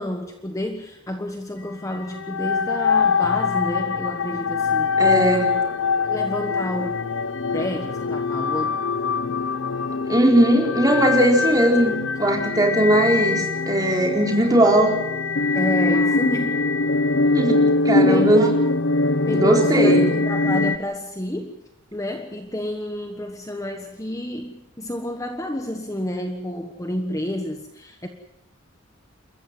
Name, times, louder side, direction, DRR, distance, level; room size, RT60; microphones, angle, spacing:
voice 1, 0.0-5.0 6.0-6.9 7.5-8.8 9.3-9.4 15.5-16.7 17.2-17.3 17.9-18.5 19.2-21.6 21.9-28.1, left 1 dB, 15° left, 5 dB, 1.3 m, -30 dB
sound 1, 1.9-20.8, left 3 dB, 70° left, 0.9 m, -22 dB
voice 2, 5.0-5.5 10.1-14.9 17.3-18.5 19.3-20.1, right 1 dB, 20° right, 1 dB, 4.3 m, -19 dB
29.0 x 14.0 x 7.8 m, 0.84 s
head